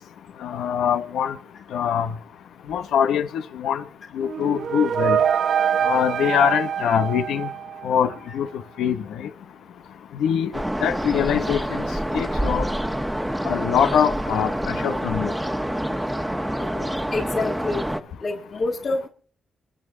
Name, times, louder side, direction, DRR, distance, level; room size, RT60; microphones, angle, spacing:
voice 1, 0.4-1.3 1.7-2.1 2.7-3.8 4.1-5.2 5.8-7.5 7.8-8.5 8.8-9.3 10.2-10.5 10.8-11.8 12.1-12.7 13.4-15.3, left 8 dB, 85° left, 1.1 m, -23 dB
sound 1, 4.2-8.1, right 8 dB, 70° right, 1.0 m, -24 dB
sound 2, 10.5-18.0, equal, 5° right, 1.3 m, -27 dB
voice 2, 16.6-17.8 18.2-19.1, left 3 dB, 60° left, 6.7 m, -28 dB
29.0 x 10.5 x 3.9 m
cardioid pair, 65°, 0 cm